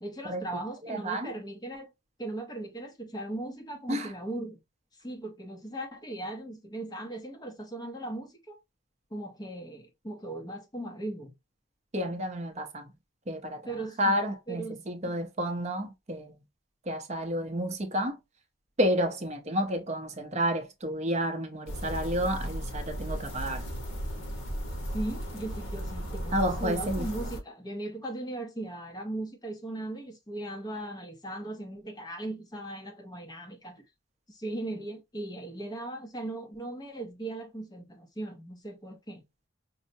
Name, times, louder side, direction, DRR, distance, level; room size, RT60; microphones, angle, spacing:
voice 1, 0.0-1.9 2.2-4.6 5.0-8.6 9.1-11.3 13.6-14.2 14.5-14.8 15.1-15.2 24.9-33.8 34.3-39.2, right 1 dB, 20° left, 0.6 m, -38 dB
voice 2, 0.8-1.3 3.9-4.1 11.9-12.9 13.3-16.3 16.9-18.2 18.8-23.7 26.3-27.1, equal, 30° right, 0.6 m, -30 dB
sound 1, 21.7-27.4, equal, 70° left, 1.0 m, -35 dB
5.3 x 2.0 x 2.6 m
head